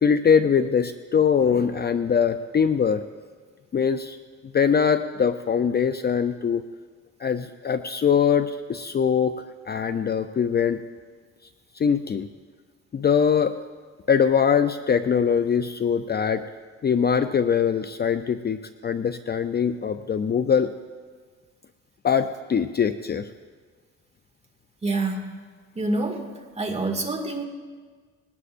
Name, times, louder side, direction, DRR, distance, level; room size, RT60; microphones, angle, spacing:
voice 1, 0.0-3.0 3.7-4.2 4.5-6.6 7.2-10.8 11.7-12.3 12.9-13.5 14.1-16.4 16.8-18.6 18.8-20.7 22.0-23.3, left 7 dB, 35° left, 9 dB, 0.5 m, -22 dB
voice 2, 24.8-25.4 25.8-26.3 26.6-27.4, right 2 dB, 20° right, 3 dB, 2.1 m, -27 dB
21.0 x 18.0 x 2.6 m, 1.5 s
cardioid pair, 90°, 30 cm